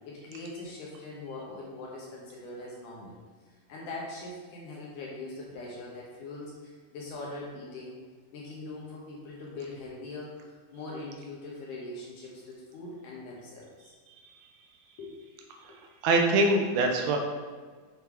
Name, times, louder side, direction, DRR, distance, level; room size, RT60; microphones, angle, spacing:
voice 1, 0.0-3.2 3.7-8.0 8.3-10.4 10.7-13.9 15.0-15.1, left 2 dB, 70° left, -3 dB, 2.1 m, -41 dB
voice 2, 16.0-17.2, right 2 dB, 85° right, 2 dB, 2.5 m, -23 dB
6.8 x 4.5 x 3.7 m, 1.5 s
omnidirectional pair, 4.4 m